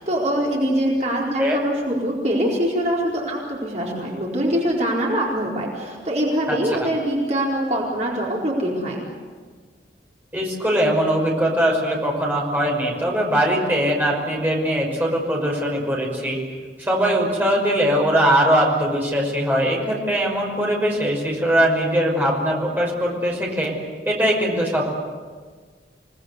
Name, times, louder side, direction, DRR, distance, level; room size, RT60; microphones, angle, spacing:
voice 1, 0.0-9.0, right 1 dB, 40° right, -4 dB, 4.6 m, -23 dB
voice 2, 6.5-6.9 10.3-16.4 16.8-23.7 24.1-24.9, equal, 10° right, -2 dB, 5.7 m, -21 dB
28.5 x 19.0 x 8.2 m, 1.5 s
head